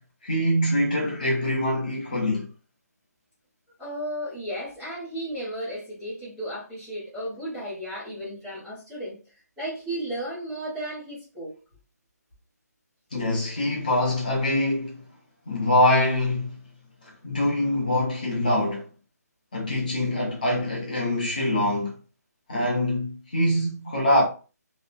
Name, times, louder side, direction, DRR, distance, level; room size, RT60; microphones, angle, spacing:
voice 1, 0.2-2.5 13.1-15.0 15.5-16.6 17.0-18.9 19.5-22.0 22.5-24.2, left 1 dB, 30° left, 0.9 m, -24 dB
voice 2, 3.8-11.5, right 1 dB, 5° right, 0.6 m, -34 dB
3.0 x 2.1 x 2.4 m
hypercardioid pair, 180°, 9 cm